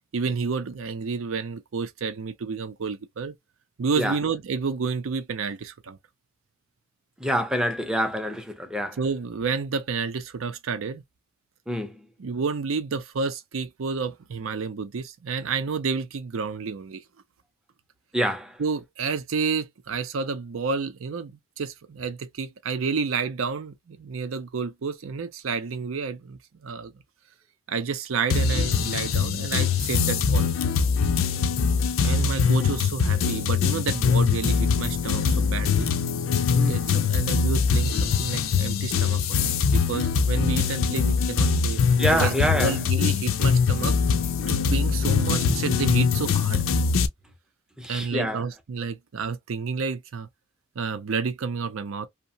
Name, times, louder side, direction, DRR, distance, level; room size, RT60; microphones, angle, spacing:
voice 1, 0.1-3.4 3.8-6.0 8.9-11.0 12.2-17.0 18.6-27.0 27.7-30.5 32.0-35.9 36.7-41.8 42.1-44.0 44.4-46.6 47.9-50.3 50.8-52.1, right 5 dB, 80° right, 0.5 m, -30 dB
voice 2, 7.2-9.0 11.7-12.0 18.1-18.6 36.5-36.8 42.0-42.8 47.8-48.4, equal, 5° right, 0.5 m, -26 dB
sound 1, 28.3-47.1, left 5 dB, 75° left, 0.4 m, -23 dB
2.8 x 2.1 x 2.6 m
head